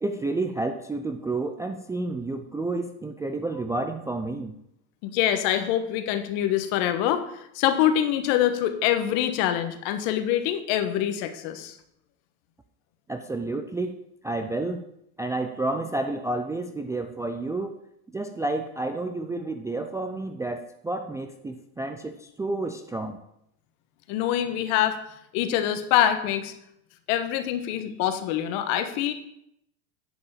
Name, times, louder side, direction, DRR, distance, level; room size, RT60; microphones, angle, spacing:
voice 1, 0.0-4.5 13.1-14.0 14.2-14.8 15.2-17.7 18.1-23.2, right 2 dB, 5° right, 5 dB, 0.4 m, -30 dB
voice 2, 5.0-11.8 24.1-25.0 25.3-26.5 27.1-29.1, left 11 dB, 60° left, 9 dB, 1.5 m, -25 dB
10.5 x 5.4 x 7.3 m, 0.76 s
supercardioid pair, 120°, 44 cm